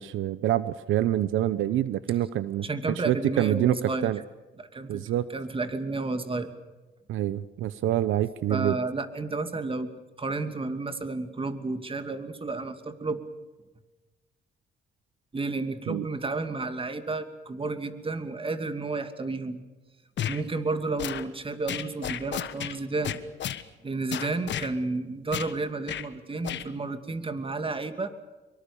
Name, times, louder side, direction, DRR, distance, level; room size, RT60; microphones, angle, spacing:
voice 1, 0.0-2.7 3.0-4.2 4.9-5.3 7.1-8.8 15.9-16.0, right 13 dB, 80° right, 15 dB, 0.9 m, -26 dB
voice 2, 2.6-4.1 4.6-5.0 5.3-6.5 8.5-13.2 15.3-19.6 20.3-23.2 23.8-28.1, right 3 dB, 25° right, 9 dB, 2.6 m, -31 dB
sound 1, 20.2-20.4 21.0-21.2 21.7-22.8 23.0-23.6 24.1-24.7 25.3-25.5 25.9-26.1 26.4-26.7, left 10 dB, 65° left, 1.4 m, -32 dB
24.5 x 23.5 x 7.0 m, 1.2 s
cardioid pair, 90°, 20 cm